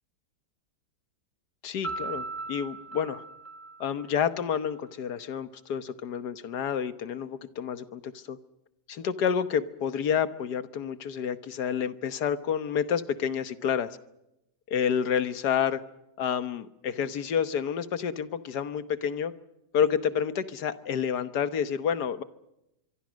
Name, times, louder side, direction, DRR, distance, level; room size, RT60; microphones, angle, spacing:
voice 1, 1.6-3.2 3.8-8.4 8.9-14.0 14.7-15.8 16.2-19.3 19.7-22.2, left 8 dB, 80° left, 13 dB, 1.7 m, -29 dB
Piano, 1.8-4.6, right 3 dB, 30° left, 2.7 m, -38 dB
24.5 x 24.0 x 6.3 m, 0.89 s
omnidirectional pair, 1.7 m